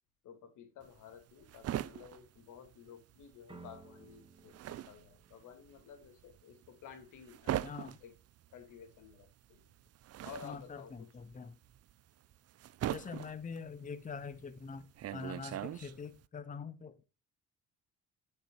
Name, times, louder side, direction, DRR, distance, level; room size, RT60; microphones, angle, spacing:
voice 1, 0.2-8.1 8.5-9.6 10.2-11.1, left 7 dB, 80° left, 2.3 m, -53 dB
sound 1, 0.8-3.4 3.6-16.3, right 12 dB, 55° right, 0.5 m, -41 dB
sound 2, 3.5-6.4, right 3 dB, 15° right, 1.7 m, -57 dB
voice 2, 7.6-8.0 10.4-11.6 12.9-17.0, left 5 dB, 25° left, 0.8 m, -44 dB
8.2 x 6.6 x 4.7 m
cardioid pair, 90°, 30 cm